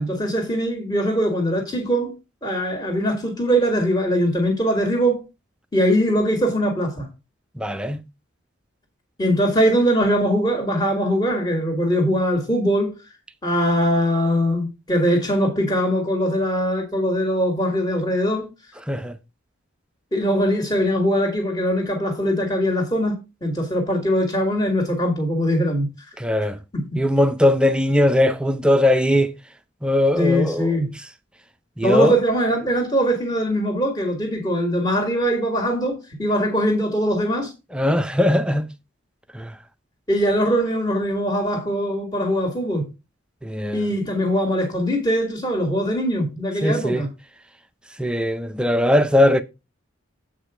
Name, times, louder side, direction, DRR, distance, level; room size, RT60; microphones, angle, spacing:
voice 1, 0.0-2.1 2.4-5.2 5.7-7.1 9.2-13.0 13.4-18.5 20.1-26.1 26.7-26.8 30.2-30.9 31.8-37.5 40.1-42.9 43.7-47.1, equal, 20° left, 1.7 m, -21 dB
voice 2, 7.6-8.0 18.9-19.1 26.2-26.6 26.9-29.3 29.8-30.8 31.8-32.2 37.7-38.7 39.3-39.5 43.4-43.9 46.6-47.0 48.0-49.4, left 1 dB, 5° right, 0.4 m, -19 dB
8.0 x 4.9 x 4.8 m
head